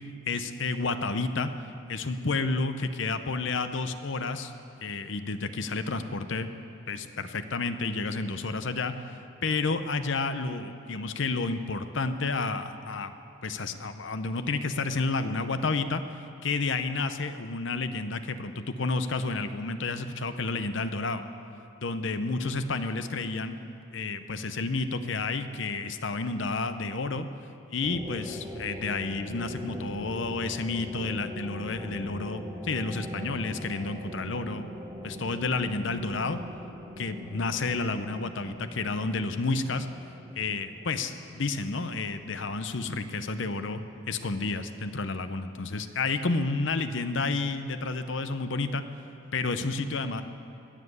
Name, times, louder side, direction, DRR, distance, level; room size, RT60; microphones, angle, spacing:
voice 1, 0.3-1.5 1.9-4.5 4.8-6.5 6.9-8.9 9.4-13.1 13.4-16.0 16.4-21.2 21.8-23.6 23.9-27.3 27.7-34.6 35.0-36.4 37.0-39.9 40.4-43.8 44.1-48.8 49.3-50.2, left 3 dB, 60° left, 10 dB, 0.7 m, -30 dB
sound 1, 27.8-44.1, equal, 15° right, 1.5 m, -42 dB
20.5 x 7.6 x 8.0 m, 2.7 s
head